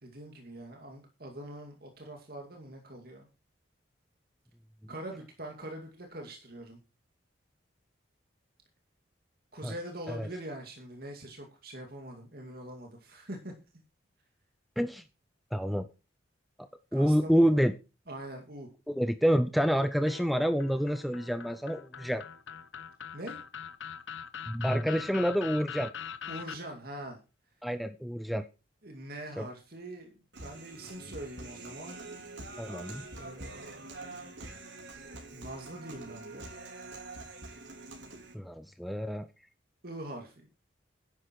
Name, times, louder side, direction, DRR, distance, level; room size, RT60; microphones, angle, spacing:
voice 1, 0.0-3.3 4.9-6.8 9.5-13.5 16.9-17.6 18.1-18.7 23.1-23.4 26.3-27.2 28.8-32.0 33.1-33.9 35.3-36.5 39.8-40.5, right 1 dB, 50° right, 2 dB, 2.5 m, -43 dB
voice 2, 15.5-15.9 16.9-17.7 18.9-22.2 24.5-25.9 27.6-28.5 29.4-29.5 32.6-33.0 38.3-39.3, equal, ahead, 11 dB, 0.6 m, -28 dB
sound 1, 20.1-26.6, left 7 dB, 75° left, 1.0 m, -42 dB
Human voice, 30.3-38.3, right 2 dB, 70° right, 5.0 m, -45 dB
11.5 x 10.5 x 4.7 m, 0.31 s
head